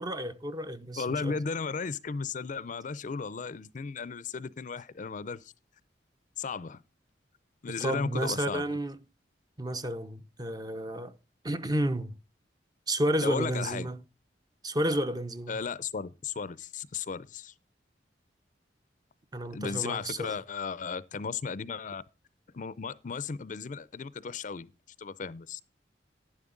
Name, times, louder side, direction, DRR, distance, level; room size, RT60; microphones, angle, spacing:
voice 1, 0.0-1.4 7.7-9.0 9.6-11.2 11.4-12.1 12.9-14.0 14.6-15.6 19.3-20.4, right 1 dB, 20° right, 0.7 m, -31 dB
voice 2, 1.0-5.5 6.4-6.8 7.6-8.6 13.2-13.9 15.5-17.5 19.5-22.0 22.5-24.7 25.0-25.6, left 5 dB, 45° left, 0.5 m, -35 dB
11.0 x 10.0 x 3.7 m
head